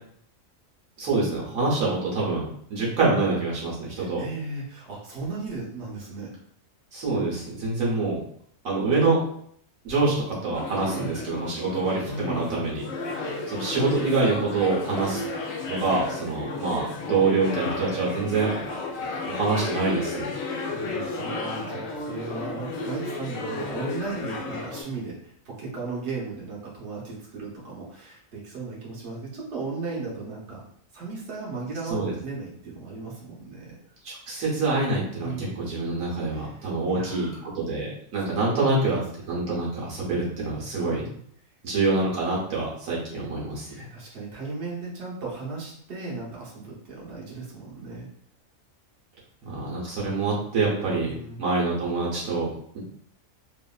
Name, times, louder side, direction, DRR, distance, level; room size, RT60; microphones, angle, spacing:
voice 1, 1.0-4.2 6.9-8.2 8.6-9.3 9.8-10.1 10.4-12.8 13.5-15.2 15.7-18.5 19.3-20.3 31.9-32.1 34.0-39.0 39.3-41.1 41.6-43.9 49.5-51.1 51.4-52.5, right 3 dB, 75° right, -5 dB, 1.2 m, -26 dB
voice 2, 4.0-6.3 10.9-11.2 12.1-12.7 20.4-30.6 30.9-33.7 35.2-35.6 36.3-36.6 36.9-37.5 40.8-41.2 43.7-48.1 51.0-51.4, right 3 dB, 55° right, -5 dB, 1.1 m, -36 dB
sound 1, 10.5-24.8, left 3 dB, 65° left, 0.8 m, -33 dB
2.9 x 2.5 x 2.3 m, 0.63 s
omnidirectional pair, 1.4 m